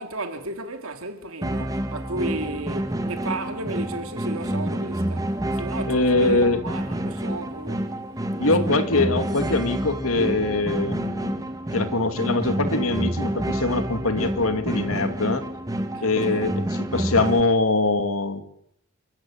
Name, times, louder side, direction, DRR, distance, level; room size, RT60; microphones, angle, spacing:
voice 1, 0.0-7.9 8.3-8.7 15.9-16.5, right 2 dB, 70° right, 3.0 m, -34 dB
sound 1, 1.4-17.4, right 1 dB, 15° right, 1.9 m, -28 dB
voice 2, 5.8-6.6 8.4-15.4 16.0-16.6 16.9-18.4, left 2 dB, 75° left, 2.4 m, -23 dB
29.0 x 15.5 x 8.8 m
head